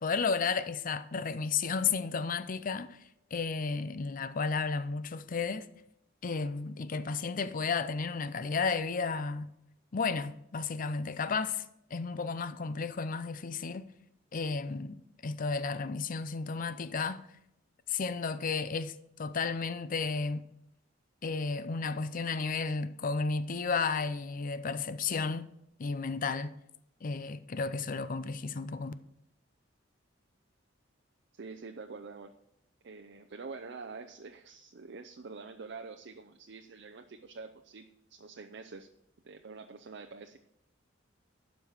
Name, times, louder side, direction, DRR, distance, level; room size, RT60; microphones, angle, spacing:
voice 1, 0.0-3.0 3.3-5.7 6.2-9.5 9.9-13.9 14.3-17.3 17.9-20.4 21.2-25.5 25.8-26.5 27.0-28.9, left 4 dB, 45° left, 0.5 m, -33 dB
voice 2, 31.3-32.3 32.8-38.9 39.2-40.4, right 4 dB, 60° right, 0.6 m, -46 dB
12.0 x 5.2 x 6.3 m
head